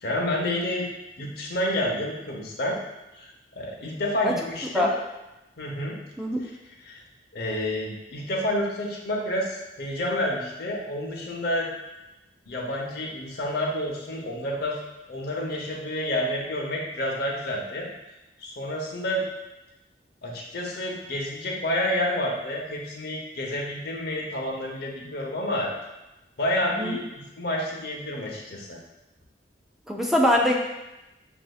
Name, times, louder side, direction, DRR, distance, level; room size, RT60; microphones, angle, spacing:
voice 1, 0.0-0.9 1.2-2.8 3.1-4.9 5.6-6.0 6.4-6.5 6.8-7.0 7.3-11.7 12.5-14.8 15.1-17.9 18.4-19.2 20.2-25.7 26.4-27.0 27.4-28.8, left 1 dB, 60° left, -1 dB, 0.8 m, -29 dB
voice 2, 29.9-30.5, left 1 dB, ahead, -2 dB, 0.3 m, -22 dB
6.3 x 2.6 x 2.3 m, 0.98 s
head